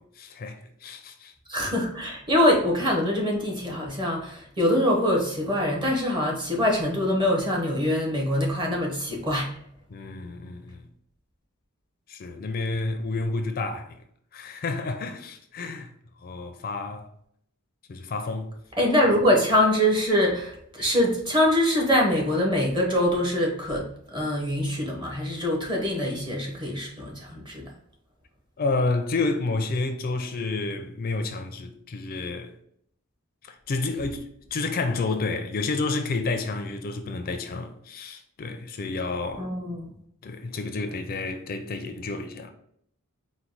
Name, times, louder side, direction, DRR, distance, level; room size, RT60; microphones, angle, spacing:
voice 1, 0.0-1.3 9.9-10.8 12.1-14.0 14.3-15.9 16.2-17.1 17.9-18.5 28.6-32.5 33.4-39.5 40.2-42.5, left 3 dB, 45° left, 0.4 m, -30 dB
voice 2, 1.5-9.6 18.8-27.7 39.3-40.0, left 1 dB, 20° right, 0.9 m, -24 dB
4.5 x 2.1 x 3.9 m
head